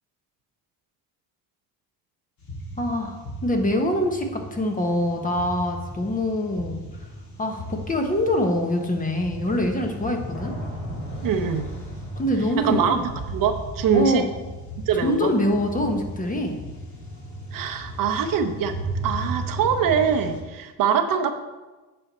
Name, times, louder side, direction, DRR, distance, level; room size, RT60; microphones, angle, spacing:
sound 1, 2.4-20.4, right 1 dB, 50° left, 2.7 m, -36 dB
voice 1, 2.8-3.1 3.4-6.8 7.4-10.5 12.2-13.0 13.9-14.2 15.0-16.6, left 1 dB, 20° left, 3 dB, 1.2 m, -24 dB
voice 2, 11.2-11.7 12.6-13.0 13.3-14.2 14.9-15.3 17.5-18.7 19.0-21.3, right 7 dB, 65° right, 7 dB, 0.8 m, -23 dB
9.0 x 5.6 x 4.2 m, 1.2 s
cardioid pair, 110°, 37 cm